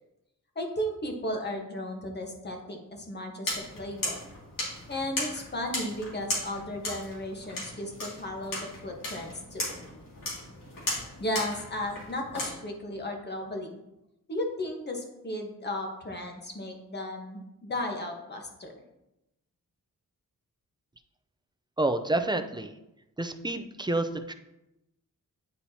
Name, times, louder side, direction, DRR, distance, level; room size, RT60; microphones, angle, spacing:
voice 1, 0.5-3.5 3.7-4.2 4.9-9.7 11.2-13.7 14.3-18.7, left 1 dB, 30° left, 2 dB, 1.2 m, -35 dB
sound 1, 3.4-12.5, left 2 dB, 80° left, 2.4 m, -36 dB
voice 2, 21.8-22.7 23.2-24.3, right 2 dB, 15° right, 7 dB, 0.4 m, -28 dB
9.7 x 4.3 x 2.8 m, 0.92 s
wide cardioid pair, 110°, 33 cm